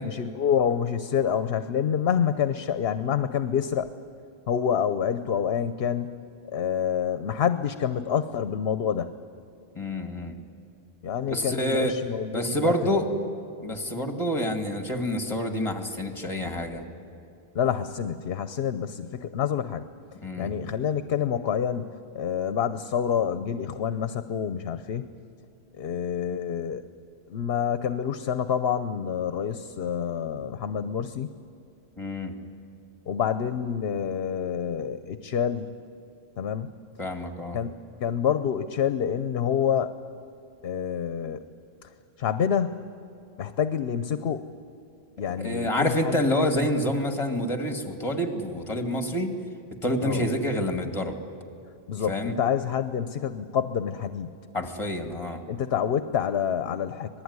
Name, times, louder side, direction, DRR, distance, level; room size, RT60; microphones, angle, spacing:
voice 1, 0.0-3.9 4.5-6.2 6.5-9.1 11.0-13.3 17.5-19.8 20.4-25.1 25.8-26.8 27.3-31.3 33.1-35.7 36.4-36.7 37.5-37.7 38.0-39.9 40.6-41.4 41.8-41.9 42.2-42.9 43.4-44.5 45.2-46.2 50.0-50.2 51.9-54.4 55.5-57.2, left 8 dB, 70° left, 11 dB, 1.0 m, -27 dB
voice 2, 9.7-10.3 11.3-11.9 12.3-13.1 13.6-16.8 20.2-20.5 26.3-26.4 32.0-32.3 37.0-37.6 45.4-49.3 49.8-51.2 52.1-52.3 54.5-55.4, equal, 30° left, 5 dB, 2.2 m, -27 dB
26.0 x 19.5 x 9.6 m, 2.6 s
omnidirectional pair, 1.1 m